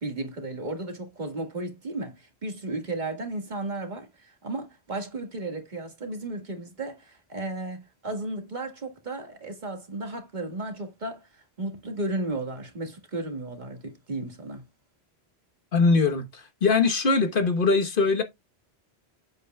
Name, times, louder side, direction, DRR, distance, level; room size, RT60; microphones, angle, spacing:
voice 1, 0.0-14.7, right 2 dB, 45° right, 1.9 m, -34 dB
voice 2, 15.7-18.2, left 4 dB, 55° left, 1.3 m, -22 dB
8.2 x 8.0 x 2.3 m
omnidirectional pair, 1.1 m